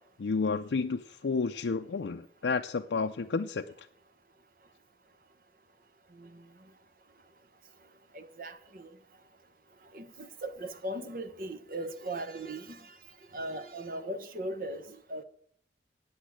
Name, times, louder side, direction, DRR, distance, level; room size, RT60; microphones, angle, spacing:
voice 1, 0.2-3.7, left 4 dB, 85° left, 0.5 m, -31 dB
voice 2, 8.1-8.9 9.9-12.9 13.3-15.2, right 1 dB, 50° right, 1.0 m, -38 dB
8.6 x 8.2 x 8.8 m
head